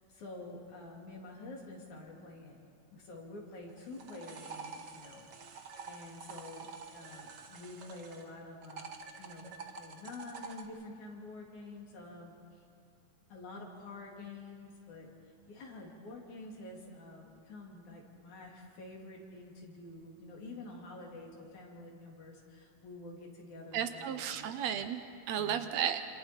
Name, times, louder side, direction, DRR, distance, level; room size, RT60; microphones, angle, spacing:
voice 1, 0.1-2.6 2.9-9.4 9.7-12.6 13.3-15.1 15.5-24.5 25.4-25.6, left 2 dB, 80° left, -2 dB, 4.3 m, -48 dB
sound 1, 3.7-8.3 8.6-10.7, right 5 dB, 55° right, 1.3 m, -47 dB
voice 2, 23.7-26.0, right 9 dB, 70° right, 9 dB, 1.9 m, -34 dB
27.0 x 27.0 x 4.5 m, 2.3 s
omnidirectional pair, 3.3 m